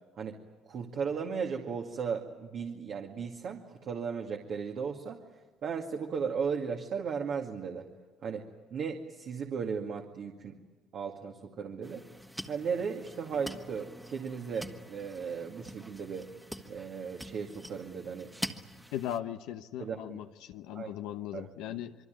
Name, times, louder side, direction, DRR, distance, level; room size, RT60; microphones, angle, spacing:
voice 1, 0.7-5.2 5.6-7.9 8.2-10.6 10.9-12.0 12.5-16.3 16.7-18.3 19.8-20.2 20.7-20.9 21.3-21.8, right 6 dB, 55° right, 1 dB, 2.2 m, -36 dB
sound 1, 11.8-19.2, equal, 5° right, 1.7 m, -45 dB
voice 2, 18.9-22.0, left 11 dB, 85° left, 6 dB, 0.9 m, -38 dB
26.0 x 23.0 x 9.4 m, 1.2 s
cardioid pair, 95°, 0 cm